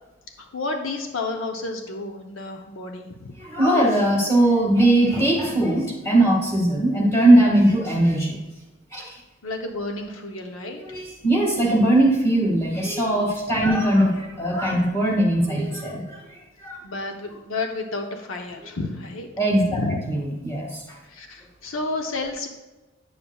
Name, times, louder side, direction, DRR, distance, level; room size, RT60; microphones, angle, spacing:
voice 1, 0.4-3.4 9.4-10.8 16.8-19.3 19.6-20.0 21.0-22.5, left 2 dB, 85° left, 3 dB, 0.8 m, -31 dB
voice 2, 3.4-8.4 8.9-9.2 10.7-16.2 16.6-16.8 19.4-21.0, right 1 dB, 15° left, -3 dB, 1.8 m, -20 dB
9.4 x 7.1 x 2.3 m, 1.1 s
head